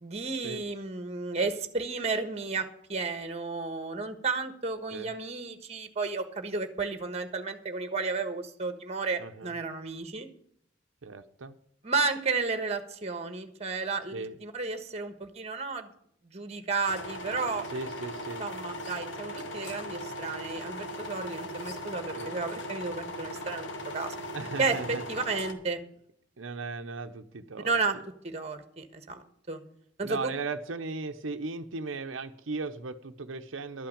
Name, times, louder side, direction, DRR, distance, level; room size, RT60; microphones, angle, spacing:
voice 1, 0.0-10.3 11.8-15.9 16.3-17.7 18.4-24.1 24.6-25.8 27.6-27.9 28.2-29.6 30.0-30.3, right 4 dB, 35° right, 8 dB, 1.4 m, -32 dB
voice 2, 9.2-9.5 11.0-11.6 14.1-14.4 17.7-18.8 22.1-22.4 24.3-25.0 26.4-27.8 30.0-33.9, right 3 dB, 85° right, 7 dB, 0.8 m, -37 dB
sound 1, 16.9-25.5, left 1 dB, 70° left, 1.6 m, -38 dB
12.5 x 5.8 x 8.6 m, 0.67 s
head